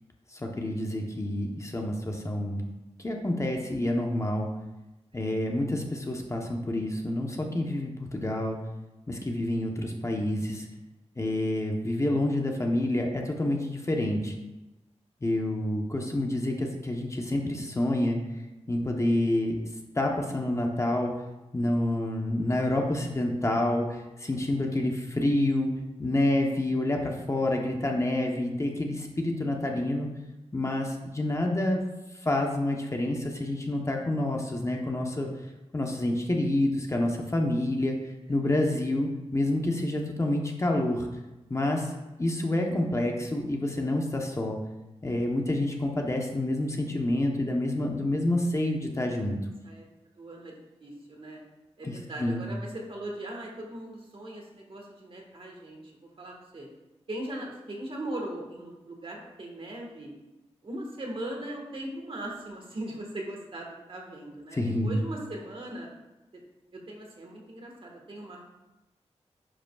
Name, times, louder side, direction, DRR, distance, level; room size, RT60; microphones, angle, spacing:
voice 1, 0.3-2.6 3.0-4.5 5.1-8.6 9.1-10.7 11.2-14.3 15.2-18.2 18.7-19.6 19.9-21.1 21.5-25.7 26.0-30.1 30.5-31.8 32.2-35.3 35.7-38.0 38.3-41.1 41.5-41.9 42.2-44.6 45.0-49.4 51.8-52.4 64.5-65.0, left 1 dB, 25° left, 1 dB, 0.9 m, -28 dB
voice 2, 50.2-51.4 51.8-55.8 56.2-56.7 57.1-60.1 60.6-65.9 66.7-68.5, right 1 dB, 50° right, 0 dB, 1.5 m, -39 dB
9.9 x 5.1 x 2.3 m, 1.0 s
wide cardioid pair, 95°, 11 cm